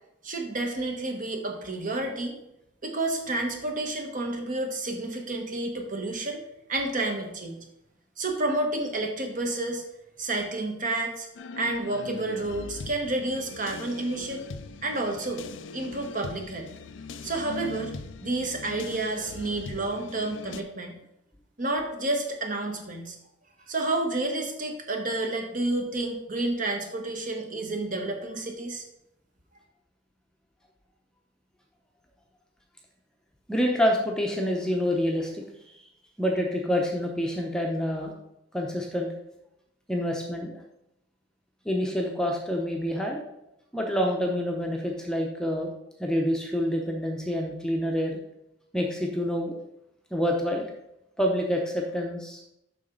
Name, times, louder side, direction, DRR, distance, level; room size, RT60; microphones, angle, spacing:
voice 1, 0.2-2.4 2.8-6.4 6.7-7.6 8.2-9.8 10.2-11.3 11.6-14.4 14.8-15.4 15.7-16.7 17.2-17.9 18.2-21.0 21.6-23.2 23.7-28.8, right 2 dB, 40° right, 3 dB, 1.2 m, -30 dB
sound 1, 11.3-20.6, left 4 dB, 70° left, 0.4 m, -41 dB
voice 2, 33.5-35.4 36.2-38.1 38.5-39.1 39.9-40.6 41.6-43.2 43.7-45.7 46.0-48.1 48.7-49.5 50.1-50.7 51.2-52.4, equal, 5° left, 0 dB, 0.7 m, -27 dB
7.5 x 5.9 x 3.8 m, 0.82 s
head